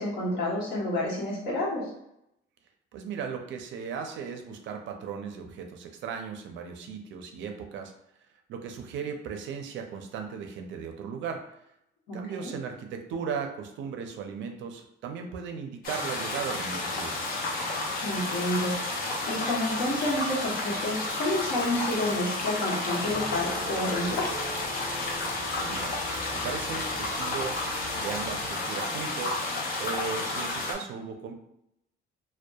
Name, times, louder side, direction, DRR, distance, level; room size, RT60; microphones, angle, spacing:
voice 1, 0.0-1.9 12.1-12.5 18.0-18.8 19.2-24.4, left 1 dB, 65° left, -5 dB, 1.0 m, -29 dB
voice 2, 2.9-7.9 8.5-11.6 12.1-17.4 25.5-25.9 26.3-27.7 28.0-29.4 29.8-31.3, right 6 dB, 70° right, 4 dB, 0.4 m, -37 dB
sound 1, 15.8-30.7, left 2 dB, 45° left, 0.5 m, -31 dB
sound 2, 23.0-28.5, equal, 20° left, 1.0 m, -43 dB
2.7 x 2.1 x 2.2 m, 0.81 s
cardioid pair, 170°, 20 cm